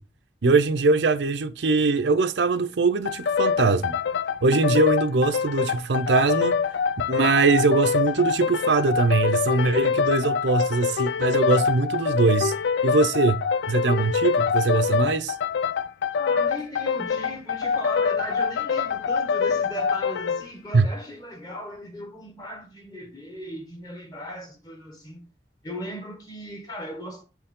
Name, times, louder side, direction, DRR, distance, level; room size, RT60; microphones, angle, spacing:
voice 1, 0.4-4.0 4.4-6.6 7.1-12.5 12.8-15.3 20.7-20.9, right 3 dB, 85° right, 0.6 m, -22 dB
sound 1, 3.0-20.5, left 6 dB, 85° left, 0.4 m, -25 dB
voice 2, 16.1-25.2 25.6-27.2, equal, 20° left, 1.4 m, -37 dB
6.9 x 4.6 x 3.7 m
head